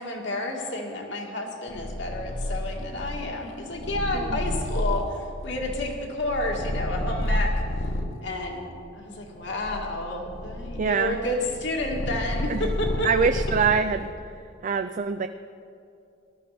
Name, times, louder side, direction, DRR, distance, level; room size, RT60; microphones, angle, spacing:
voice 1, 0.0-7.5 8.2-13.1, left 1 dB, 60° left, 0 dB, 2.2 m, -30 dB
Purr, 1.7-8.2 8.9-14.1, left 1 dB, 85° left, 1.3 m, -30 dB
voice 2, 10.8-11.2 12.5-12.7 13.0-14.1 14.6-15.3, right 6 dB, 40° right, 9 dB, 0.4 m, -24 dB
19.0 x 13.0 x 4.3 m, 2.6 s
head